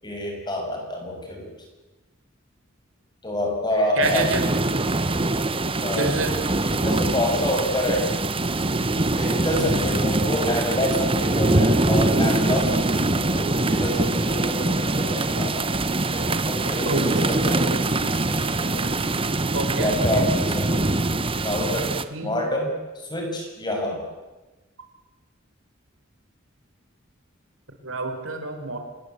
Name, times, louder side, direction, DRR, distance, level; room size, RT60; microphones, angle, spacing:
voice 1, 0.0-1.5 3.2-4.3 5.8-6.1 6.6-8.1 9.1-15.7 16.1-18.8 19.8-20.7 21.4-21.9 22.2-24.0, left 1 dB, 20° left, 2 dB, 6.9 m, -27 dB
sound 1, 4.0-22.0, right 2 dB, 25° right, 1.1 m, -23 dB
voice 2, 4.0-4.4 6.0-6.3 9.5-9.8 16.8-17.6 19.5-20.0 22.1-22.3 27.8-28.8, right 2 dB, 85° right, 4 dB, 4.7 m, -27 dB
27.0 x 21.0 x 8.3 m, 1.2 s
head